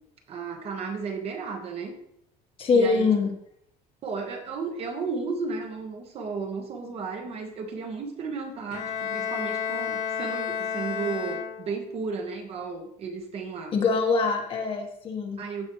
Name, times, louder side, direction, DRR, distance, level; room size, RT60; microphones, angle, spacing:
voice 1, 0.3-2.0 2.7-3.1 4.0-13.7 15.4-15.7, right 4 dB, 40° right, 3 dB, 1.4 m, -34 dB
voice 2, 2.6-3.3 13.7-15.4, left 4 dB, 35° left, 3 dB, 1.3 m, -23 dB
Bowed string instrument, 8.7-11.9, left 7 dB, 50° left, 1.8 m, -31 dB
15.0 x 5.2 x 3.1 m, 0.73 s
cardioid pair, 160°, 16 cm